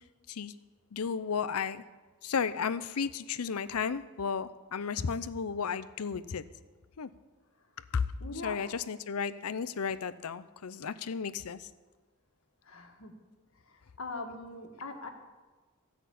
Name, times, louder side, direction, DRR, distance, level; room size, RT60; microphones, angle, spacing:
voice 1, 0.9-1.8 2.2-6.4 7.0-7.1 7.9-8.1 8.4-11.7, left 6 dB, 85° left, 14 dB, 0.6 m, -33 dB
voice 2, 8.2-8.6 12.7-13.1 13.7-15.1, left 3 dB, 65° left, 4 dB, 1.6 m, -41 dB
15.0 x 5.9 x 8.4 m, 1.3 s
head